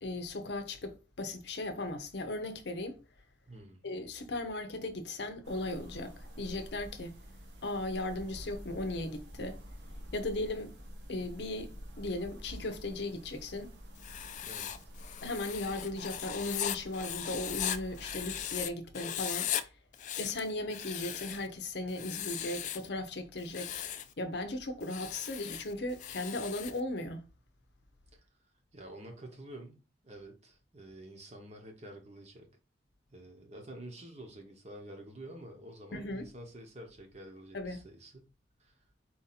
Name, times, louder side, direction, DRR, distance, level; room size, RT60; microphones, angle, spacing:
voice 1, 0.0-3.0 3.8-7.2 7.6-9.6 10.1-10.7 11.1-11.7 12.0-13.7 15.2-19.5 20.2-23.7 24.2-27.2 35.9-36.3 37.5-37.8, left 2 dB, 65° left, 0.7 m, -37 dB
voice 2, 3.5-3.8 14.4-14.7 28.7-32.5 33.1-38.3 38.6-38.8, right 1 dB, 35° right, 1.0 m, -49 dB
sound 1, 5.4-18.7, equal, 75° right, 1.1 m, -49 dB
Writing, 14.0-18.7 18.9-19.6 19.9-21.5 21.9-22.9 23.4-24.1 24.8-26.8, left 10 dB, 40° left, 0.3 m, -38 dB
4.3 x 2.7 x 4.0 m
head